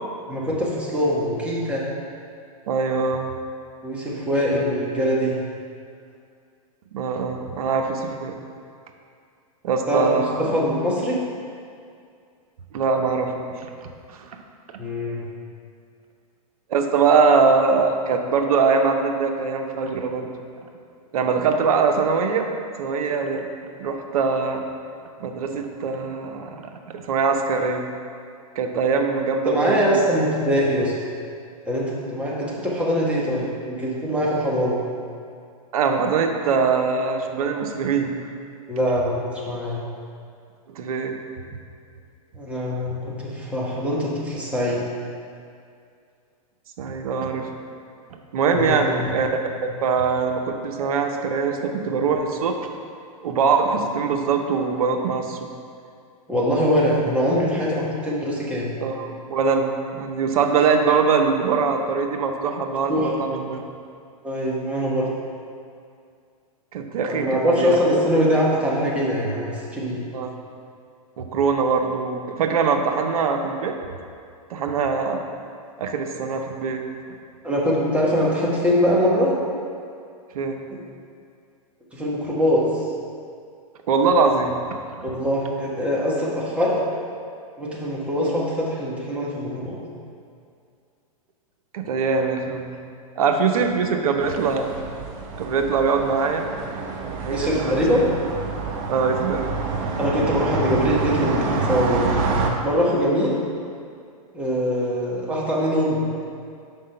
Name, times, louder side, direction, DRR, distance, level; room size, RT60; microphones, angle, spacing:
voice 1, 0.3-1.9 3.8-5.3 9.9-10.1 10.4-11.2 14.8-15.3 29.4-31.0 31.6-34.8 38.7-39.8 42.3-44.9 48.5-49.1 56.3-58.8 62.9-63.1 64.2-65.1 67.0-70.0 77.4-79.3 81.9-82.9 85.0-86.8 87.6-89.8 97.3-98.2 100.0-102.0 102.6-103.3 104.3-106.0, equal, 5° right, -6 dB, 1.3 m, -23 dB
voice 2, 2.7-3.3 6.9-8.4 9.6-10.5 12.7-13.5 14.1-14.4 14.7-14.8 16.7-20.3 20.6-20.7 21.1-22.5 22.8-23.5 23.8-24.6 25.2-27.9 28.6-29.8 35.7-38.1 40.7-41.2 46.8-47.5 48.3-49.3 49.8-52.7 53.2-55.5 58.8-63.6 66.7-67.8 70.1-70.4 71.2-73.8 74.5-75.3 75.8-76.8 80.3-80.6 83.9-84.6 91.7-92.8 93.2-94.7 95.3-96.5 97.0-98.0 98.9-99.6 102.8-103.1, right 5 dB, 70° right, 4 dB, 0.7 m, -22 dB
sound 1, 94.2-102.5, right 4 dB, 40° right, 0.8 m, -27 dB
5.8 x 3.6 x 5.5 m, 2.3 s
hypercardioid pair, 120°, 19 cm